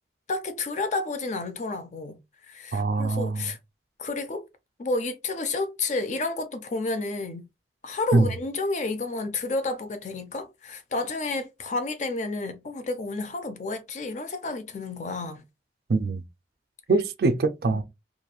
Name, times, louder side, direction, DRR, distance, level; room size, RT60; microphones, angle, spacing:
voice 1, 0.3-2.2 2.5-3.6 4.0-4.5 4.8-7.5 7.8-15.4 17.7-17.8, left 3 dB, 40° left, 0.4 m, -30 dB
voice 2, 2.7-3.5 8.1-8.3 15.9-16.2 16.9-17.8, right 3 dB, 60° right, 0.4 m, -23 dB
3.0 x 2.5 x 2.2 m
head